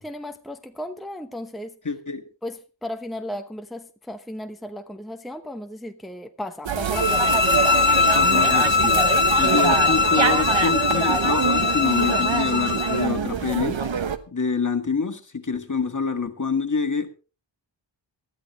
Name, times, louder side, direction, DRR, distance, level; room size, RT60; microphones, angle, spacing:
voice 1, 0.0-1.7 2.4-7.4, left 1 dB, ahead, 0.9 m, -35 dB
voice 2, 1.9-2.2 8.1-9.0 9.4-13.8 14.3-17.1, left 4 dB, 40° left, 1.7 m, -26 dB
sound 1, 6.6-14.2, right 6 dB, 85° right, 1.2 m, -25 dB
Brass instrument, 6.7-9.3, right 1 dB, 40° right, 2.5 m, -42 dB
sound 2, 6.9-13.1, left 5 dB, 80° left, 1.5 m, -21 dB
19.5 x 13.5 x 3.2 m
wide cardioid pair, 95°, 45 cm